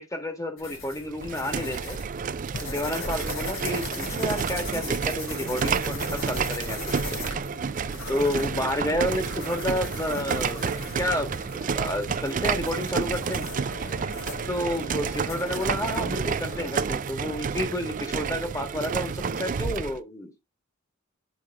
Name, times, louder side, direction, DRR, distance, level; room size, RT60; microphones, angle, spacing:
voice 1, 0.0-2.0 2.6-7.2 8.1-13.5 14.5-20.3, left 1 dB, 15° left, 1.5 m, -30 dB
sound 1, 0.6-15.8, left 2 dB, 85° left, 3.7 m, -39 dB
sound 2, 1.1-20.0, right 6 dB, 40° right, 0.4 m, -30 dB
sound 3, 3.3-16.8, left 2 dB, 65° left, 2.5 m, -45 dB
9.4 x 4.7 x 3.4 m
head